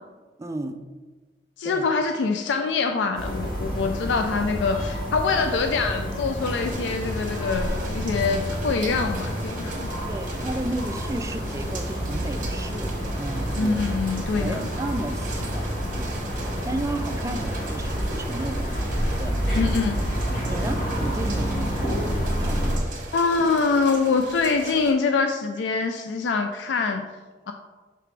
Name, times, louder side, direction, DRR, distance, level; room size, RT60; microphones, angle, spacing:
voice 1, 0.4-0.8 1.6-1.9 8.9-9.0 10.1-13.9 14.4-15.6 15.9-16.2 16.6-19.8 20.5-22.0 22.3-23.0, right 1 dB, 15° right, 6 dB, 0.4 m, -33 dB
voice 2, 1.6-9.9 13.6-14.7 19.5-20.0 23.1-27.0 27.5-27.6, left 4 dB, 85° left, 6 dB, 0.4 m, -24 dB
sound 1, 3.1-22.8, equal, 50° left, 1.4 m, -28 dB
sound 2, 6.4-24.9, right 3 dB, 50° right, 1.1 m, -39 dB
5.8 x 4.9 x 3.3 m, 1.3 s
head